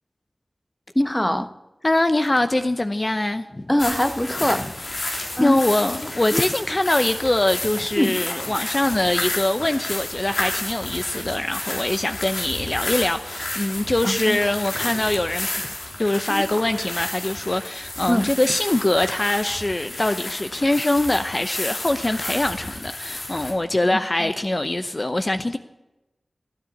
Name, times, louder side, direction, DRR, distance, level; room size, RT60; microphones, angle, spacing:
voice 1, 0.9-1.5 3.7-4.7 5.4-5.6 6.3-6.4 8.0-8.2 14.0-14.4 16.3-16.4 18.1-18.4 24.2-24.3, left 1 dB, 15° left, 1.0 m, -22 dB
voice 2, 1.8-3.7 5.1-25.6, left 1 dB, 35° left, 0.8 m, -23 dB
sound 1, 3.8-23.5, left 2 dB, 80° left, 3.6 m, -31 dB
15.5 x 9.8 x 8.7 m
wide cardioid pair, 45°, 0 cm